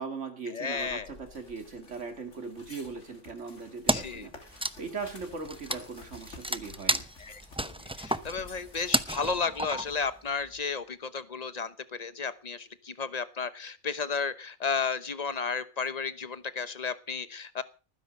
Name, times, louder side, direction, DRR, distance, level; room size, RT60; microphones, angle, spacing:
voice 1, 0.0-7.1, right 4 dB, 70° right, 7 dB, 2.5 m, -39 dB
voice 2, 0.5-1.1 3.9-4.3 7.3-17.6, left 5 dB, 35° left, 14 dB, 1.0 m, -33 dB
sound 1, 0.7-9.0, left 2 dB, 70° left, 3.3 m, -51 dB
Wood, 3.9-4.2 4.5-10.1, right 1 dB, 5° right, 0.5 m, -31 dB
19.5 x 10.0 x 5.3 m, 0.36 s
omnidirectional pair, 1.3 m